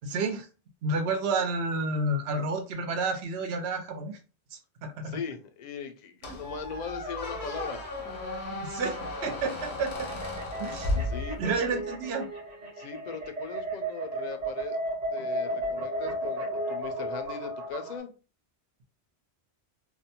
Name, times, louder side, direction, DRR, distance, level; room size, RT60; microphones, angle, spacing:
voice 1, 0.0-0.5 0.8-4.2 4.5-5.2 6.2-6.4 8.5-10.1 10.6-11.0 11.4-12.3, right 3 dB, 75° right, 0.8 m, -30 dB
voice 2, 5.0-7.8 11.0-11.6 12.8-14.8 15.1-18.1, left 6 dB, 55° left, 0.5 m, -39 dB
Squeak, 6.2-11.7, left 2 dB, 80° left, 1.0 m, -34 dB
sound 1, 9.8-18.0, right 1 dB, 45° right, 0.7 m, -34 dB
2.6 x 2.1 x 2.8 m
omnidirectional pair, 1.1 m